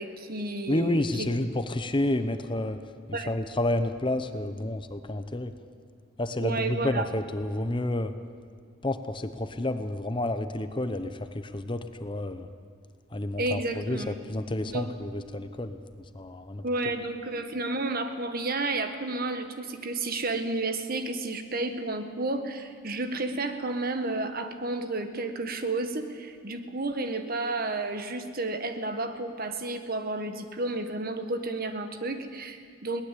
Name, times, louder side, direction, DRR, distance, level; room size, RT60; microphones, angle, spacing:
voice 1, 0.0-1.3 3.1-3.3 6.4-7.1 13.4-14.2 14.6-14.9 16.6-33.0, right 2 dB, 45° right, 8 dB, 1.5 m, -31 dB
voice 2, 0.7-2.8 3.1-5.5 6.2-8.1 8.8-12.5 13.1-15.8 16.1-16.6, left 1 dB, 25° left, 9 dB, 0.8 m, -30 dB
22.0 x 18.5 x 8.4 m, 2.1 s
head